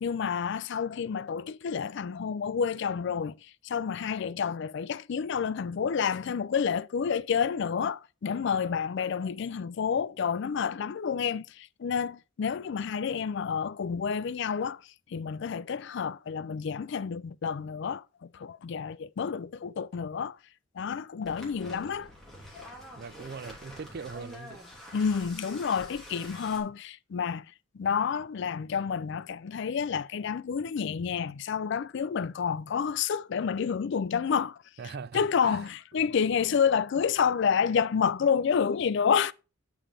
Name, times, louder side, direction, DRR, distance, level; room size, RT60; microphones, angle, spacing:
voice 1, 0.0-20.4 20.7-22.1 22.5-22.7 24.9-27.5 27.7-34.6 35.1-39.3, left 6 dB, 55° left, 0.4 m, -29 dB
sound 1, 21.2-26.6, left 1 dB, ahead, 2.9 m, -47 dB
voice 2, 23.0-24.6 34.8-35.6, right 5 dB, 50° right, 0.4 m, -41 dB
8.7 x 7.1 x 3.2 m
head